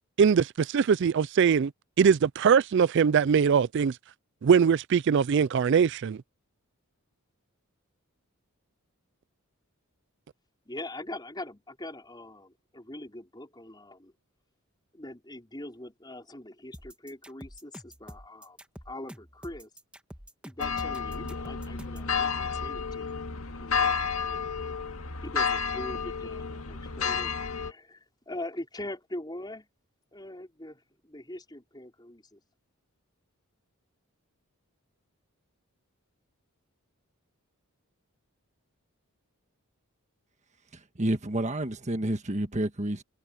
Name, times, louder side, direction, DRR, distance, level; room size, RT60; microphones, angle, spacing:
voice 1, 0.2-1.7 2.0-4.0 4.4-6.2, right 6 dB, 55° right, 0.3 m, -22 dB
voice 2, 10.7-14.1 14.9-18.6 18.9-19.7 20.4-23.2 23.6-24.0 24.3-24.7 25.2-29.7 30.1-32.4, left 1 dB, 20° left, 5.0 m, -42 dB
sound 1, 16.7-22.1, equal, 5° right, 1.9 m, -47 dB
sound 2, 20.6-27.7, left 6 dB, 75° left, 2.0 m, -31 dB
voice 3, 41.0-43.0, right 1 dB, 30° right, 1.6 m, -29 dB
head